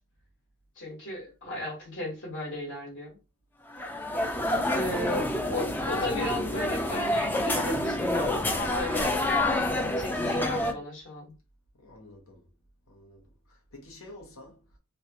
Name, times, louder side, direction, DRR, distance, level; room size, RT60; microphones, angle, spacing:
voice 1, 0.8-3.2 4.7-9.1 9.4-11.3, left 1 dB, 60° left, 1.4 m, -35 dB
sound 1, 3.7-10.7, left 1 dB, 10° left, 0.4 m, -28 dB
voice 2, 4.2-4.5 11.8-12.5 12.9-14.6, left 2 dB, 75° left, 1.1 m, -49 dB
3.2 x 2.3 x 2.9 m
head